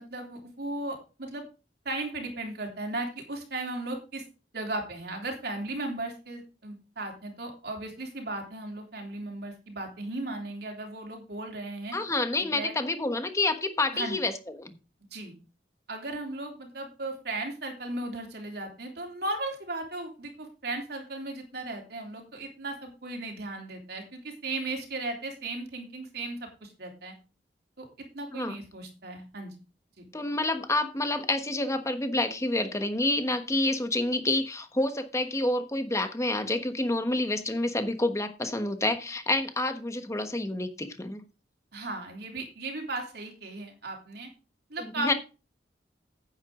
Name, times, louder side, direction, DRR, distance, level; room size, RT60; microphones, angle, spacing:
voice 1, 0.0-1.4 1.9-4.2 4.5-11.9 12.4-12.7 13.9-14.2 15.1-15.4 15.9-27.1 27.8-27.9 28.1-29.5 30.0-30.1 41.7-44.3 44.7-45.1, right 2 dB, 65° right, 3.3 m, -36 dB
voice 2, 11.9-14.7 28.3-28.5 30.1-41.2 44.8-45.1, left 2 dB, 15° left, 1.2 m, -28 dB
9.8 x 9.2 x 3.8 m
head